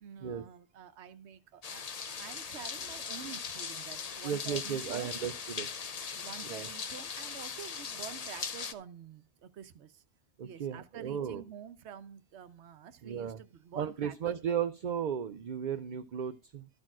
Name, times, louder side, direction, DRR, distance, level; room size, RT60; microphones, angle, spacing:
voice 1, 0.0-5.1 6.2-9.9 10.4-14.5, right 8 dB, 90° right, 1.0 m, -48 dB
sound 1, 1.6-8.7, left 6 dB, 40° left, 0.7 m, -40 dB
voice 2, 4.2-5.7 6.4-6.7 10.4-11.4 13.0-13.4 13.7-16.7, right 8 dB, 50° right, 0.6 m, -35 dB
12.5 x 4.5 x 6.0 m
omnidirectional pair, 1.1 m